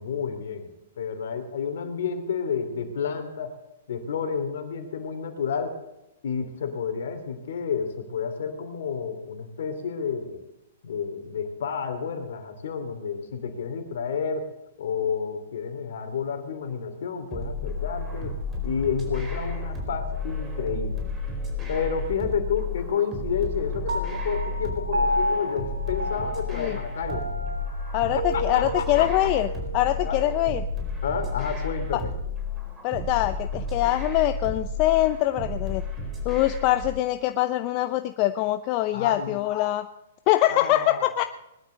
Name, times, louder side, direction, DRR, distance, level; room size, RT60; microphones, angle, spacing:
voice 1, 0.0-3.5 3.9-5.8 6.2-10.4 10.8-14.5 14.8-18.4 18.6-21.1 21.7-27.3 28.3-29.1 30.0-30.2 31.0-32.1 38.9-39.4 40.5-41.0, left 6 dB, 65° left, 7 dB, 3.0 m, -30 dB
sound 1, 17.3-36.9, left 3 dB, 20° right, 4.6 m, -32 dB
Piano, 23.9-30.6, equal, 80° right, 3.0 m, -31 dB
voice 2, 27.9-29.5 29.7-30.7 31.9-32.0 32.8-35.8 36.2-39.9 40.3-41.2, left 14 dB, 40° left, 9 dB, 0.7 m, -24 dB
20.5 x 12.0 x 3.9 m, 0.91 s
hypercardioid pair, 120°, 0 cm